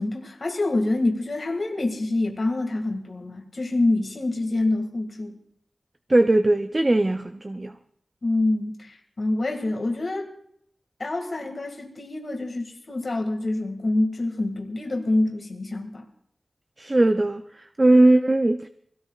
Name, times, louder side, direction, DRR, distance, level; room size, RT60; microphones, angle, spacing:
voice 1, 0.0-5.4 8.2-10.3 11.0-16.0, left 2 dB, 55° left, 1.9 m, -26 dB
voice 2, 6.1-7.7 16.8-18.7, right 2 dB, 30° right, 0.5 m, -19 dB
24.0 x 17.5 x 2.4 m
wide cardioid pair, 95°, 0 cm